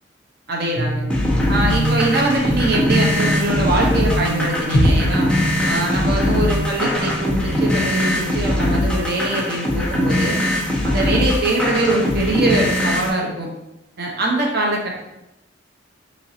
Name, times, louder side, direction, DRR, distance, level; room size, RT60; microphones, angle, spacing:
voice 1, 0.5-1.1 1.5-5.3 5.7-10.4 10.8-13.5 14.0-14.9, right 2 dB, 55° right, -1 dB, 0.8 m, -22 dB
sound 1, 0.8-8.5, right 1 dB, 75° right, 1.3 m, -26 dB
sound 2, 1.1-13.1, left 1 dB, 5° left, 0.5 m, -21 dB
sound 3, 4.7-8.7 9.0-9.1, equal, 15° right, 1.0 m, -25 dB
4.5 x 3.0 x 2.7 m, 0.90 s
head